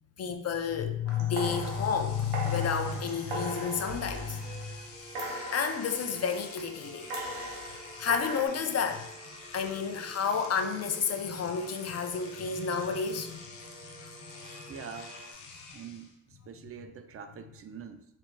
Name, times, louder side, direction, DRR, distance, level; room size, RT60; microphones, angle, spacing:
voice 1, 0.2-4.8 5.5-7.1 8.0-9.1 9.5-13.4, left 6 dB, 35° left, 7 dB, 0.4 m, -30 dB
Engine / Domestic sounds home sounds, 1.1-1.2 1.5-16.1, left 4 dB, 90° left, 0.6 m, -49 dB
sound 1, 1.1-4.8 5.1-6.6 7.1-8.5, right 1 dB, 75° right, 0.8 m, -39 dB
sound 2, 2.9-15.3, right 1 dB, 15° right, 0.8 m, -51 dB
voice 2, 14.7-15.2 15.7-18.0, right 7 dB, 30° right, 9 dB, 0.4 m, -45 dB
4.6 x 2.4 x 2.2 m, 0.80 s
hypercardioid pair, 50°, 47 cm